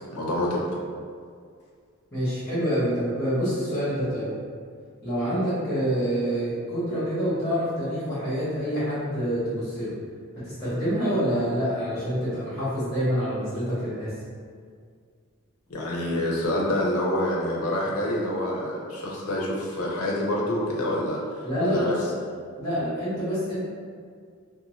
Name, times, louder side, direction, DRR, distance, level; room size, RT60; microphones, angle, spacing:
voice 1, 0.1-0.8 15.7-22.0, left 1 dB, 80° left, -3 dB, 0.5 m, -27 dB
voice 2, 2.1-4.4 5.0-9.9 10.4-14.1 21.4-22.1 22.6-23.6, equal, 10° left, -13 dB, 0.9 m, -27 dB
2.6 x 2.0 x 3.0 m, 2.1 s
head